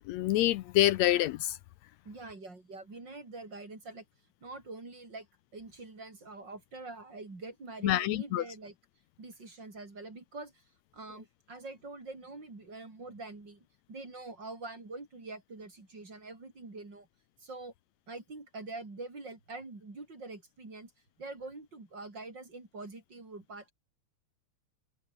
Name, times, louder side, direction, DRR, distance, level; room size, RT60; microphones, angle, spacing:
voice 1, 0.1-1.6 7.8-8.4, left 15 dB, 80° left, 1.8 m, -26 dB
voice 2, 2.1-4.1 4.4-5.3 5.5-8.7 9.2-10.6 10.9-17.1 17.4-17.7 18.1-20.9 21.2-23.7, right 3 dB, 35° right, 5.6 m, -45 dB
open air
omnidirectional pair, 3.3 m